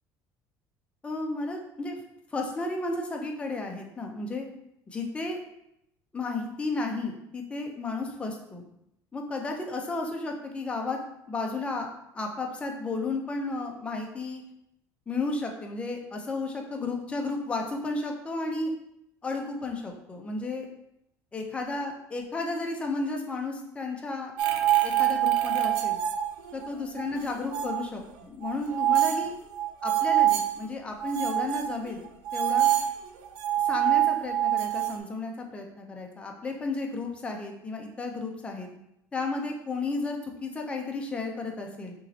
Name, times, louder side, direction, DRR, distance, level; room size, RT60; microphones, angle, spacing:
voice 1, 1.0-2.0 2.3-4.5 4.9-5.4 6.1-8.6 9.1-11.0 11.3-11.9 12.1-14.4 15.1-18.7 19.2-20.7 21.3-24.3 24.8-26.0 26.5-29.3 29.8-32.0 32.3-32.7 33.6-38.7 39.1-41.9, left 3 dB, 15° left, 1 dB, 0.6 m, -33 dB
sound 1, 24.4-26.7 27.0-27.9 28.4-30.5 31.0-35.0, right 12 dB, 80° right, 0.5 m, -25 dB
5.4 x 3.1 x 2.8 m, 0.81 s
cardioid pair, 155°, 8 cm